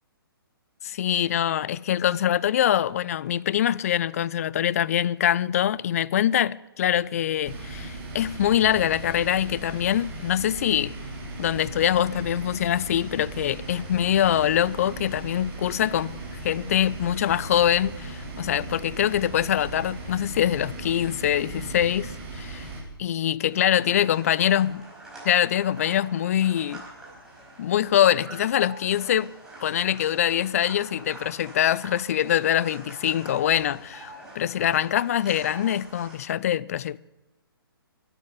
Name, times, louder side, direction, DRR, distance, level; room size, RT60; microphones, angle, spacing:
voice 1, 0.8-10.9 11.4-16.1 16.4-22.7 23.0-24.9 25.2-26.8 27.6-29.3 29.6-37.0, left 10 dB, 40° left, 0.4 m, -24 dB
sound 1, 7.4-22.8, right 2 dB, 30° right, 3.9 m, -37 dB
sound 2, 23.5-36.2, right 2 dB, 5° right, 4.8 m, -45 dB
12.0 x 9.6 x 9.9 m
figure-of-eight pair, 130°, 13 cm